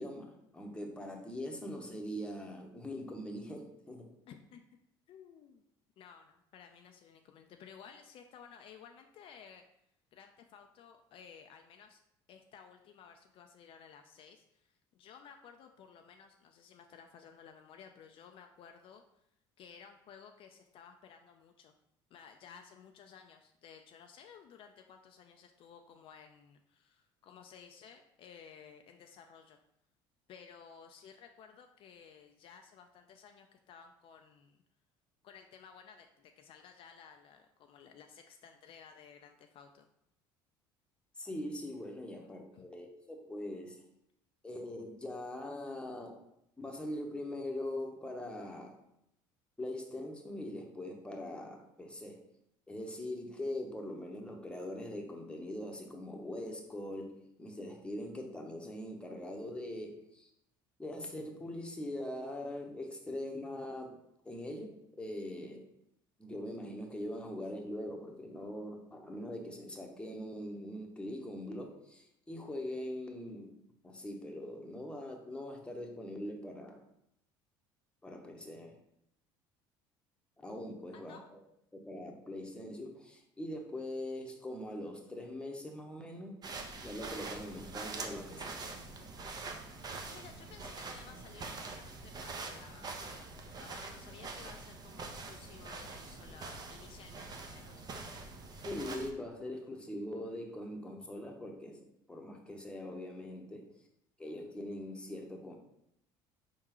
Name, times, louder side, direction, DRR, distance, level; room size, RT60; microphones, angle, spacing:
voice 1, 0.0-4.1 41.2-43.8 44.4-46.2 46.6-48.8 49.6-52.2 52.7-60.3 60.8-64.0 64.2-65.7 66.2-73.5 73.8-76.8 78.0-78.8 80.4-81.4 81.7-86.4 86.8-88.6 98.6-103.7 104.2-105.6, left 1 dB, 10° left, 2 dB, 0.8 m, -42 dB
voice 2, 4.3-4.6 5.1-5.6 6.0-9.6 10.1-12.0 12.3-19.0 19.6-21.7 22.1-29.6 30.3-34.6 35.2-39.9 42.5-42.7 80.9-81.3 90.0-97.9, left 7 dB, 55° left, 5 dB, 0.4 m, -55 dB
sound 1, 86.4-99.1, right 3 dB, 35° right, 0.7 m, -44 dB
4.4 x 3.6 x 3.0 m, 0.78 s
supercardioid pair, 85°, 11 cm